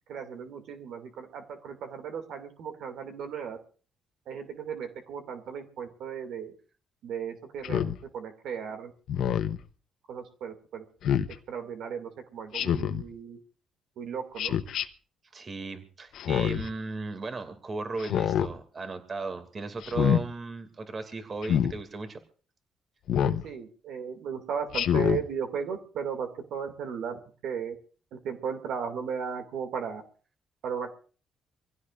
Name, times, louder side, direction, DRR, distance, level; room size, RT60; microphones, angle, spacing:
voice 1, 0.1-3.6 4.3-6.5 7.0-8.9 10.1-10.8 11.5-13.4 14.0-14.6 23.2-27.7 28.1-30.0 30.6-30.9, right 7 dB, 80° right, 6 dB, 2.4 m, -36 dB
Speech synthesizer, 7.6-8.0 9.1-9.6 11.0-11.3 12.5-13.0 14.4-14.8 16.1-16.7 18.0-18.5 19.8-20.2 21.4-21.7 23.1-23.4 24.7-25.2, left 9 dB, 75° left, 0.9 m, -26 dB
voice 2, 15.3-22.2, right 3 dB, 40° right, 9 dB, 2.4 m, -36 dB
25.0 x 16.0 x 2.5 m, 0.40 s
cardioid pair, 90°, 0 cm